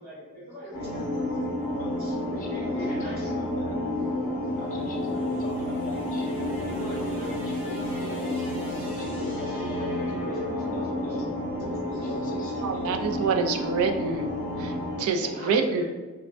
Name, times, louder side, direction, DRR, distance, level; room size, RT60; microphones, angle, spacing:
voice 1, 0.0-1.4 2.0-3.4 5.4-5.5 6.8-7.3 11.9-12.1 12.4-12.5 15.3-15.8, equal, 45° right, -15 dB, 1.4 m, -42 dB
sound 1, 0.7-15.0, left 1 dB, 20° right, 1.0 m, -30 dB
voice 2, 2.4-3.8 4.6-8.5 8.9-11.2 11.6-12.9 15.2-15.7, left 2 dB, 35° left, 0 dB, 0.4 m, -40 dB
sound 2, 4.5-12.8, equal, 90° right, 1.2 m, -44 dB
voice 3, 12.6-14.3 14.6-15.8, right 5 dB, 65° right, 5 dB, 0.3 m, -27 dB
3.3 x 2.1 x 2.5 m, 1.2 s
head